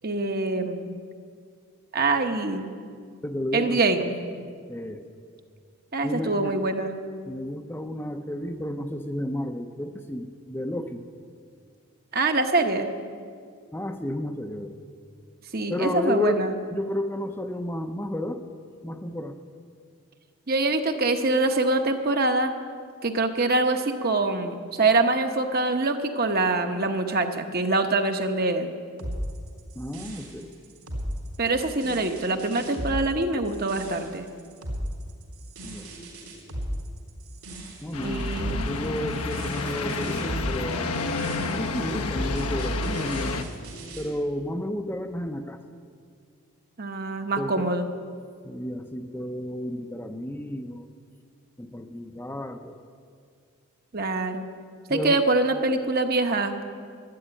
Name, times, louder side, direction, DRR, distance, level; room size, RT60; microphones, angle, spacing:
voice 1, 0.0-0.9 1.9-2.7 3.5-4.2 5.9-6.9 12.1-12.9 15.5-16.5 20.5-22.5 23.0-28.7 31.4-34.2 38.0-38.7 46.8-47.8 53.9-54.4 54.9-56.6, right 2 dB, 40° right, 6 dB, 1.0 m, -24 dB
voice 2, 3.2-3.8 4.7-5.0 6.0-6.6 7.2-11.1 13.7-14.8 15.7-18.4 18.8-19.4 29.7-30.5 35.6-35.9 37.8-40.9 41.6-43.5 44.0-45.6 47.4-47.7 48.4-50.9 51.6-52.8 54.9-55.2, left 1 dB, 10° left, 5 dB, 0.6 m, -32 dB
sound 1, 29.0-44.1, equal, 85° right, 3.7 m, -36 dB
sound 2, 37.9-43.4, left 3 dB, 80° left, 1.0 m, -29 dB
12.5 x 11.5 x 8.9 m, 2.1 s
head